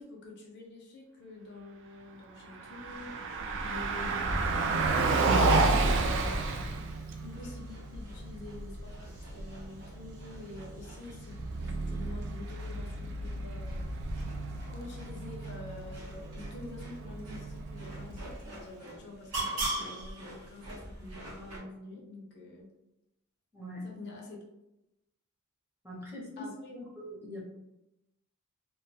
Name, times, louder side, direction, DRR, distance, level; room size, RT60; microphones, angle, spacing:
voice 1, 0.0-6.9 7.2-9.0 9.3-13.8 14.7-22.7 23.8-24.4 26.4-26.8, left 2 dB, 50° left, -1 dB, 0.5 m, -47 dB
Car passing by, 2.4-18.6, right 3 dB, 55° right, 0.3 m, -32 dB
sound 1, 2.9-21.6, right 1 dB, 90° right, 0.8 m, -42 dB
voice 2, 23.5-23.9 25.8-27.4, left 1 dB, 10° right, -5 dB, 0.8 m, -42 dB
2.3 x 2.2 x 2.7 m, 0.90 s
head